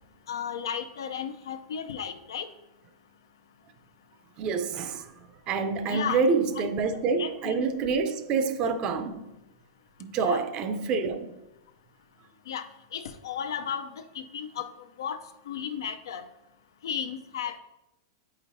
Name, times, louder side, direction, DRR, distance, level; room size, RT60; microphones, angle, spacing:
voice 1, 0.3-2.5 5.9-6.2 6.5-6.7 7.2-7.6 10.2-10.4 12.5-12.7 12.9-14.7 15.0-15.2 15.5-16.3 16.8-17.6, left 8 dB, 85° left, 0.6 m, -34 dB
voice 2, 4.4-5.1 5.5-9.3 10.0-11.3, right 5 dB, 40° right, 0.6 m, -27 dB
8.3 x 5.0 x 2.7 m
hypercardioid pair, 125°, 2 cm